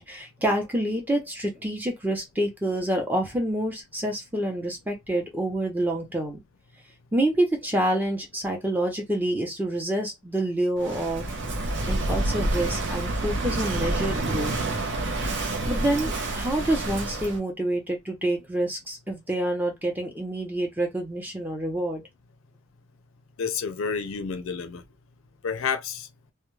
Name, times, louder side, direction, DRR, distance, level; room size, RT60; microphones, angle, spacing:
voice 1, 0.0-6.4 7.1-11.3 11.8-14.5 15.7-22.0, right 1 dB, 10° right, 0.7 m, -27 dB
Walk footsteps / Wind / Waves surf, 10.8-17.4, right 2 dB, 60° right, 0.7 m, -28 dB
voice 2, 23.4-24.8 25.4-26.1, left 6 dB, 80° left, 0.5 m, -29 dB
2.3 x 2.1 x 3.1 m
head